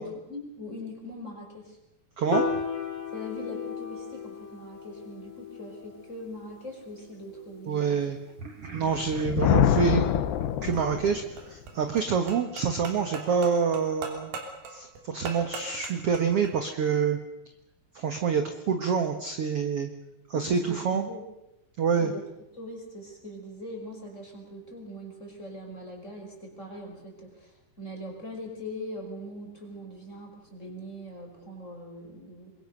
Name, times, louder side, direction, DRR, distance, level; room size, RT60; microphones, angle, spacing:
voice 1, 0.0-1.8 3.1-8.0 8.6-9.1 20.3-21.3 22.0-22.2 22.5-32.5, left 1 dB, 15° left, 1 dB, 5.6 m, -41 dB
Piano, 2.3-8.6, left 6 dB, 50° left, 4.7 m, -36 dB
voice 2, 7.7-10.1 10.6-14.3 14.7-17.2 17.9-19.9 20.3-21.0 21.8-22.1, right 6 dB, 60° right, 6 dB, 1.6 m, -27 dB
Thunder, 8.9-11.4, left 10 dB, 80° left, 3.1 m, -25 dB
sound 1, 10.6-16.6, right 4 dB, 85° right, 5.3 m, -41 dB
26.5 x 22.5 x 6.6 m, 0.88 s
omnidirectional pair, 4.7 m